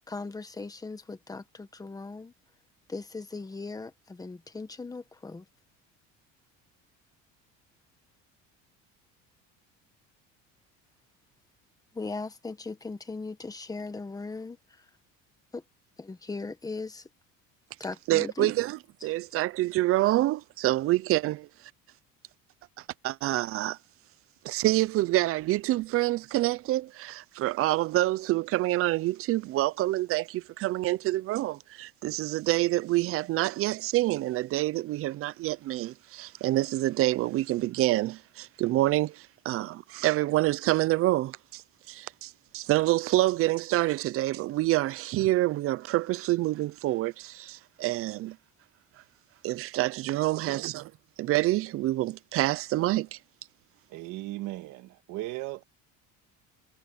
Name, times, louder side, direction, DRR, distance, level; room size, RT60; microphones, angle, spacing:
voice 1, 0.0-2.3 2.9-5.4 11.9-14.8 15.5-15.6 16.0-17.1 17.8-18.5, left 3 dB, 10° left, 1.4 m, -38 dB
voice 2, 18.1-18.8 19.0-21.5 23.0-23.8 24.4-41.6 41.9-48.4 49.4-50.8 51.2-53.2, right 17 dB, 45° right, 0.5 m, -27 dB
voice 3, 53.9-55.6, right 17 dB, 70° right, 2.0 m, -37 dB
cardioid pair, 150°, 31 cm